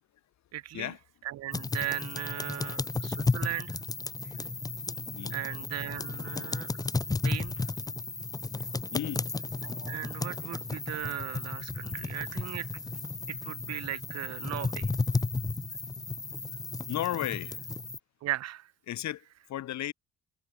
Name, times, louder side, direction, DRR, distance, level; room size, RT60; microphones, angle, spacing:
voice 1, 0.5-0.9 1.2-3.8 5.3-6.8 7.2-7.6 9.6-12.7 13.3-14.9 18.2-18.7, right 13 dB, 60° right, 0.5 m, -37 dB
sound 1, 1.5-18.0, left 3 dB, 10° left, 0.5 m, -34 dB
voice 2, 8.9-9.3 9.9-10.0 16.9-17.6 18.9-19.9, left 13 dB, 65° left, 1.0 m, -35 dB
sound 2, 11.3-17.7, left 6 dB, 40° left, 6.4 m, -71 dB
cardioid pair, 90°, 30 cm